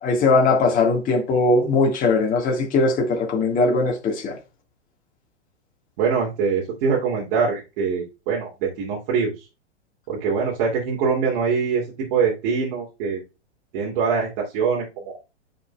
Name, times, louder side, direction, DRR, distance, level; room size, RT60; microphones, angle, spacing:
voice 1, 0.0-4.4, left 3 dB, 25° left, 1.7 m, -20 dB
voice 2, 6.0-9.4 10.1-13.2 13.7-15.2, right 5 dB, 50° right, 2.6 m, -23 dB
9.9 x 5.1 x 2.3 m
hypercardioid pair, 120°, 35 cm